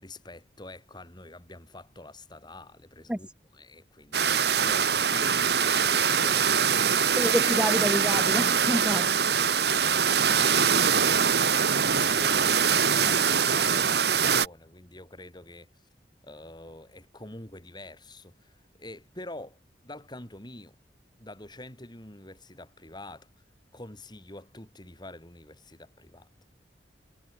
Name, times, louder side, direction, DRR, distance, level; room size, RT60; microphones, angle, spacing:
voice 1, 0.0-7.5 8.9-11.3 11.6-15.9 16.2-20.8 21.2-23.4 23.7-26.3, left 2 dB, 25° left, 6.0 m, -46 dB
sound 1, 4.1-14.5, right 7 dB, 65° right, 2.0 m, -23 dB
voice 2, 7.2-9.2, equal, 5° right, 2.5 m, -28 dB
head